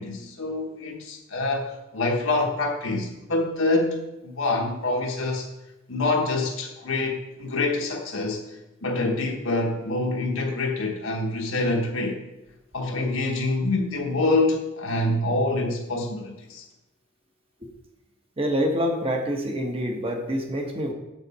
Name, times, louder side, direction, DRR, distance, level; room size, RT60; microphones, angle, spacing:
voice 1, 0.0-5.5 5.9-8.4 8.8-12.2 12.7-16.6, left 2 dB, 80° left, 0 dB, 1.1 m, -26 dB
voice 2, 18.4-20.9, equal, 25° right, 3 dB, 1.2 m, -26 dB
8.0 x 7.5 x 4.2 m, 0.97 s
head